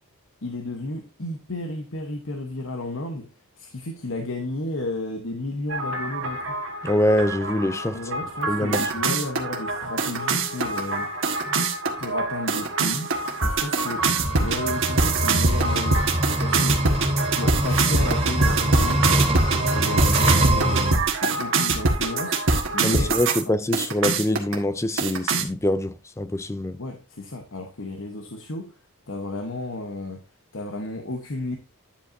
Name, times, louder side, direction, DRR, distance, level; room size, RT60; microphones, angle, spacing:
voice 1, 0.4-3.3 3.6-6.5 7.9-11.1 12.0-14.1 14.4-16.1 16.4-16.8 17.4-19.1 19.5-22.4 22.7-23.2 26.8-28.7 29.1-30.2 30.5-31.6, left 2 dB, 60° left, 1.1 m, -33 dB
sound 1, 5.7-23.4 23.7-24.5 25.0-25.4, right 3 dB, 60° right, 1.5 m, -24 dB
voice 2, 6.8-8.1 8.5-8.8 11.5-11.6 22.8-26.8, left 1 dB, 15° left, 0.4 m, -24 dB
sound 2, 14.0-20.9, right 1 dB, 25° right, 3.4 m, -24 dB
10.0 x 7.7 x 2.7 m
head